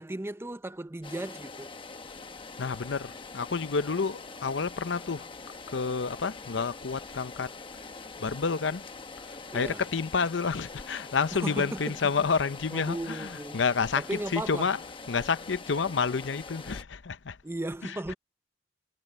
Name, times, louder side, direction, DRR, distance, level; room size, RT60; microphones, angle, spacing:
voice 1, 0.0-1.7 9.5-9.8 11.3-12.0 12.7-13.6 14.0-14.7 17.4-18.1, right 1 dB, 15° right, 0.6 m, -36 dB
sound 1, 1.0-16.8, left 4 dB, 30° left, 1.0 m, -44 dB
voice 2, 2.6-5.3 5.7-7.5 8.2-8.9 9.2-14.8 15.1-17.4 17.8-17.9, left 5 dB, 70° left, 0.7 m, -29 dB
head